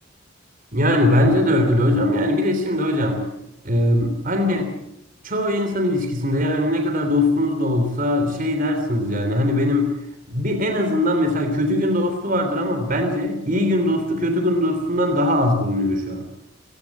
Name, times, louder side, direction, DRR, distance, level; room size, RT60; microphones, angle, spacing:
voice 1, 0.7-3.3 3.6-4.7 5.2-9.9 10.3-16.2, left 1 dB, 45° right, 6 dB, 3.3 m, -21 dB
29.0 x 16.0 x 7.3 m, 0.81 s
head